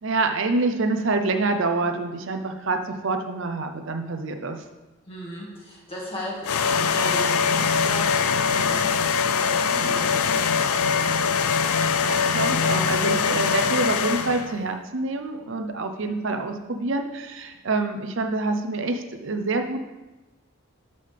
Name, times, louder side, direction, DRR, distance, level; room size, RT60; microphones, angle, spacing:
voice 1, 0.0-4.6 9.7-10.0 12.0-19.9, right 3 dB, 60° right, 5 dB, 0.7 m, -26 dB
voice 2, 5.1-10.6, equal, 25° left, -4 dB, 2.0 m, -37 dB
sound 1, 6.4-14.6, left 6 dB, 80° left, 0.5 m, -22 dB
13.0 x 5.4 x 3.5 m, 1.1 s
head